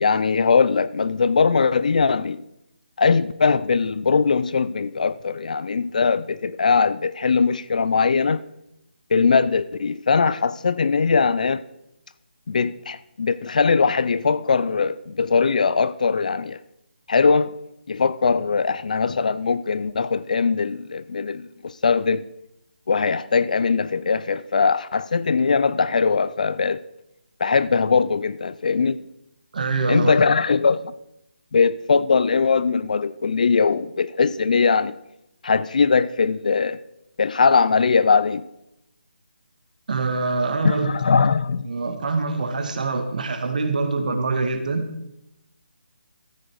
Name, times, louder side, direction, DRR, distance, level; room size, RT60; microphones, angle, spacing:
voice 1, 0.0-2.4 3.0-8.4 9.1-11.6 12.5-16.6 17.1-17.5 17.9-22.2 22.9-26.8 27.4-29.0 29.9-30.9 31.5-34.9 35.4-36.8 37.2-38.5 40.6-41.7, left 5 dB, 45° left, 0.4 m, -20 dB
voice 2, 29.5-30.1 39.9-40.9 41.7-44.9, right 3 dB, 45° right, 1.7 m, -24 dB
13.5 x 9.2 x 4.6 m
hypercardioid pair, 170°, 6 cm